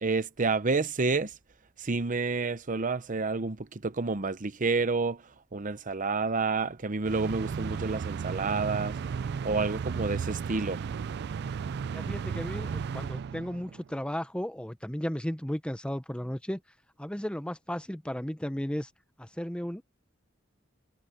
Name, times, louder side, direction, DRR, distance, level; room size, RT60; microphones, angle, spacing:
voice 1, 0.0-1.3 1.8-5.2 5.5-9.0 9.4-10.8, right 4 dB, 40° right, 0.8 m, -29 dB
sound 1, 7.1-13.9, right 6 dB, 55° right, 0.3 m, -34 dB
voice 2, 11.9-16.6 17.0-18.9 19.2-19.8, equal, 5° left, 0.8 m, -34 dB
head